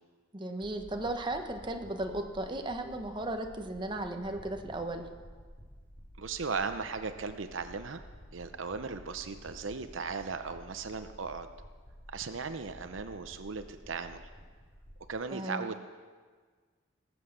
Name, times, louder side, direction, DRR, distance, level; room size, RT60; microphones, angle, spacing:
voice 1, 0.3-5.0 15.3-15.7, right 1 dB, 25° right, 5 dB, 1.0 m, -35 dB
sound 1, 0.6-15.1, equal, 10° left, 3.6 m, -52 dB
voice 2, 6.2-8.0 8.3-11.5 12.1-14.2 15.1-15.8, right 4 dB, 80° right, 9 dB, 0.8 m, -37 dB
19.5 x 8.1 x 6.6 m, 1.5 s
head